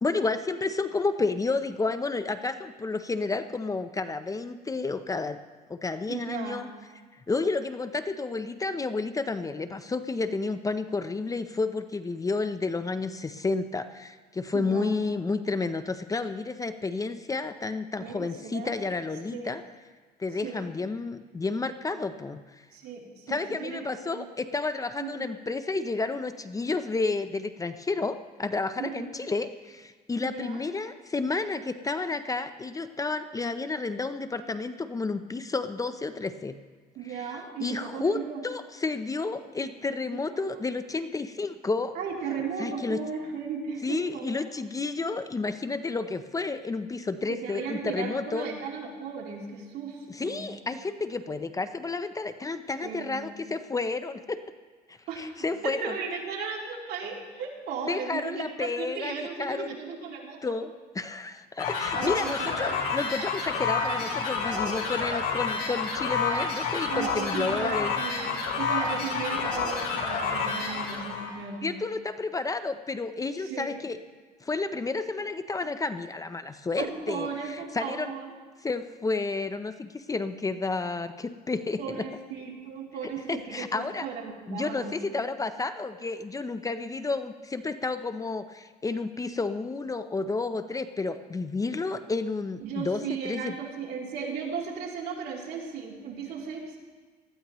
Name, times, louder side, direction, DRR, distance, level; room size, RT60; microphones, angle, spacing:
voice 1, 0.0-5.4 5.7-6.7 7.3-19.6 20.2-22.4 23.3-36.5 37.0-37.2 37.6-41.9 42.6-43.0 43.8-48.5 50.1-54.4 54.9-55.9 57.8-59.7 60.4-68.0 71.6-74.0 74.4-78.1 78.6-82.1 83.0-84.1 84.5-93.5, left 3 dB, 20° left, 10 dB, 0.6 m, -31 dB
voice 2, 6.1-6.7 14.5-15.0 18.0-18.8 19.3-19.5 20.4-20.6 22.7-24.2 25.0-25.3 28.8-29.1 30.2-30.6 36.9-38.4 40.1-40.6 41.9-44.4 47.3-50.5 52.8-53.3 55.1-55.3 55.6-58.5 58.8-60.5 61.9-62.8 66.9-71.7 73.4-73.8 76.8-78.3 81.8-85.0 92.6-96.8, right 6 dB, 70° right, -2 dB, 3.2 m, -36 dB
sound 1, 61.6-71.3, left 4 dB, 75° left, 4.7 m, -29 dB
19.0 x 14.0 x 3.1 m, 1.4 s
cardioid pair, 110°, 17 cm